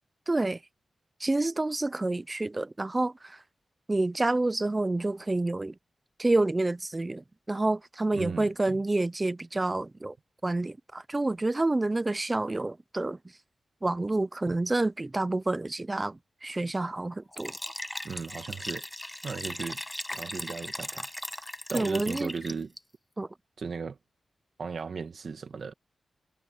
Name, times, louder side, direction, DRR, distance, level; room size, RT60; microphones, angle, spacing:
voice 1, 0.3-0.6 1.2-3.4 3.9-5.7 6.2-10.1 10.4-13.2 13.8-17.5 21.7-22.3 23.2-23.3, right 2 dB, 20° right, 0.6 m, -28 dB
voice 2, 8.1-8.8 14.5-14.6 18.0-18.9 19.2-19.8 20.1-21.1 21.7-22.7 23.6-24.0 24.6-25.7, right 5 dB, 60° right, 1.9 m, -36 dB
Liquid, 17.3-22.8, left 1 dB, 10° left, 6.2 m, -38 dB
wide cardioid pair, 115°, 0 cm